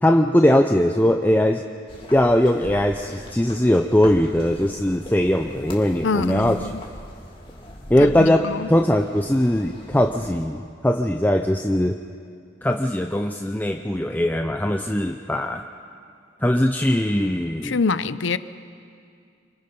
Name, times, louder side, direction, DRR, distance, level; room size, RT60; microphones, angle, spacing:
voice 1, 0.0-1.6 2.1-6.6 7.9-12.0 12.6-15.6 16.4-17.8, left 1 dB, 10° left, 5 dB, 0.5 m, -20 dB
sound 1, 1.9-10.4, left 1 dB, 30° left, 2.3 m, -40 dB
voice 2, 6.0-6.8 8.0-8.7 17.6-18.4, left 4 dB, 75° left, 14 dB, 0.6 m, -25 dB
27.5 x 25.0 x 5.4 m, 2.3 s
head